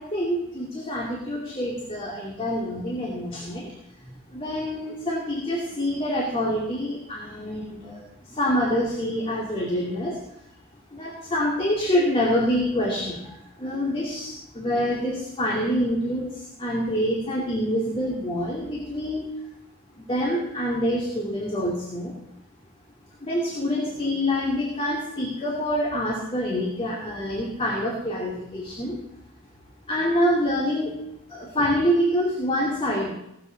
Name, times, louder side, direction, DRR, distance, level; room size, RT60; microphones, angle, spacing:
voice 1, 0.0-3.7 4.3-10.2 10.9-19.3 20.1-22.2 23.2-29.0 29.9-31.0 31.3-33.1, equal, 25° left, -3 dB, 2.5 m, -26 dB
17.5 x 13.0 x 4.0 m, 0.81 s
head